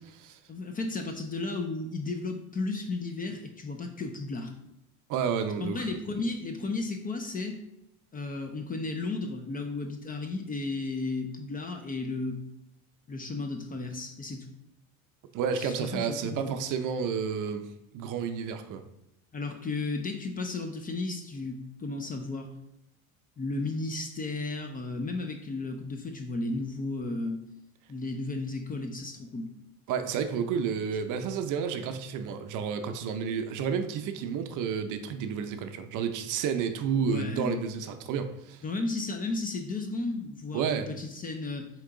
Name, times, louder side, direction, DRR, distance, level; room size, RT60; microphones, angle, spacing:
voice 1, 0.5-4.5 5.6-7.6 8.1-12.4 13.1-14.5 15.6-16.6 19.3-22.5 23.4-27.4 27.9-29.5 37.0-37.6 38.6-41.7, left 3 dB, 20° left, 4 dB, 0.4 m, -34 dB
voice 2, 5.1-5.9 15.3-18.8 29.9-38.6 40.5-40.9, right 7 dB, 50° right, 8 dB, 0.5 m, -31 dB
4.5 x 2.9 x 3.7 m, 0.85 s
supercardioid pair, 95°, 41 cm